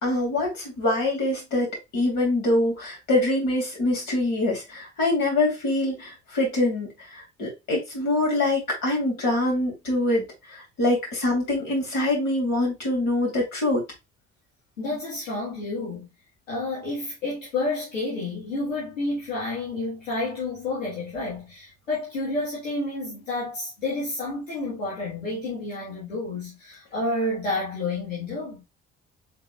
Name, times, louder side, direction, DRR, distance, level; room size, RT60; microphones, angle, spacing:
voice 1, 0.0-13.8, left 2 dB, 60° left, 2.9 m, -24 dB
voice 2, 14.8-16.1 16.5-28.6, left 2 dB, 90° left, 1.4 m, -30 dB
5.3 x 3.9 x 2.2 m
hypercardioid pair, 45°, 37 cm